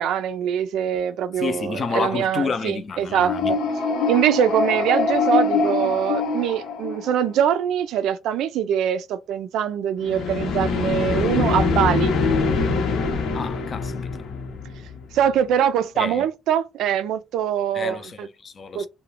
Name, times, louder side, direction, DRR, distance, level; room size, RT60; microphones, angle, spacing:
voice 1, 0.0-3.6 4.1-12.1 15.1-18.3 18.7-18.9, right 9 dB, 75° right, 0.3 m, -23 dB
voice 2, 1.4-3.5 13.3-13.9 16.0-16.2 17.7-18.9, left 5 dB, 40° left, 0.5 m, -29 dB
sound 1, 3.1-7.4 10.0-15.0, left 4 dB, 75° left, 0.7 m, -24 dB
2.4 x 2.1 x 3.2 m
cardioid pair, 125°, 0 cm